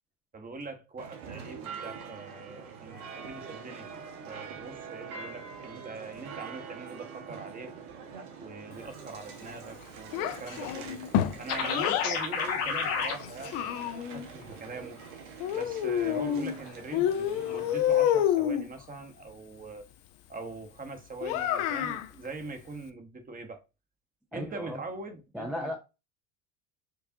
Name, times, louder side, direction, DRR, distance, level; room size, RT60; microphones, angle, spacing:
voice 1, 0.3-7.8 8.4-11.0 11.4-15.0 15.5-19.8 20.3-23.6 24.3-25.8, right 3 dB, 20° right, 0.9 m, -42 dB
sound 1, 1.0-18.1, right 6 dB, 75° right, 1.0 m, -45 dB
Child speech kid speaking, 10.1-12.1 13.0-14.3 15.4-16.6 16.9-18.7 21.2-22.1, left 10 dB, 55° left, 0.6 m, -28 dB
sound 2, 11.5-13.1, left 6 dB, 80° left, 1.1 m, -30 dB
voice 2, 24.3-24.8 25.3-25.8, left 1 dB, ahead, 0.4 m, -35 dB
4.7 x 2.3 x 2.7 m
hypercardioid pair, 95°, 44 cm